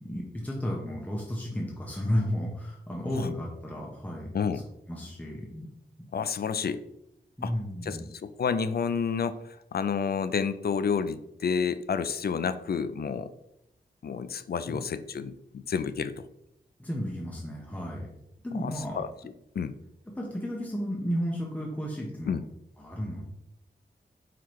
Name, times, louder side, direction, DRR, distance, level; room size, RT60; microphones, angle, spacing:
voice 1, 0.0-4.6 4.9-5.7 7.4-8.0 14.7-14.8 16.8-18.1 18.4-19.0 20.2-22.4 22.8-23.2, equal, 10° left, -2 dB, 1.0 m, -33 dB
voice 2, 6.1-6.8 7.4-7.5 7.8-13.3 14.0-16.3 18.6-19.1 19.6-19.7 22.3-22.4, left 6 dB, 55° left, 12 dB, 0.4 m, -30 dB
4.7 x 3.7 x 3.0 m, 0.82 s
cardioid pair, 50°, 19 cm